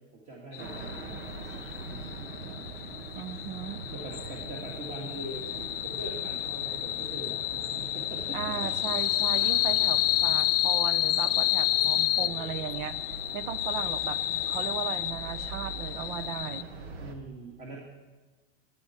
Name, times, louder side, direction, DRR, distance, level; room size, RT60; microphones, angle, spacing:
voice 1, 0.1-2.6 3.9-5.4 5.8-8.7 12.2-12.6 17.0-17.8, right 2 dB, 25° right, -2 dB, 2.2 m, -43 dB
sound 1, 0.5-16.6, left 15 dB, 70° left, 0.7 m, -30 dB
sound 2, 0.6-17.1, right 4 dB, 90° right, 1.9 m, -43 dB
voice 2, 3.1-3.8 8.3-13.0 13.3-14.2 14.5-16.7, right 10 dB, 55° right, 15 dB, 0.8 m, -36 dB
23.5 x 9.8 x 4.4 m, 1.3 s
supercardioid pair, 170°, 29 cm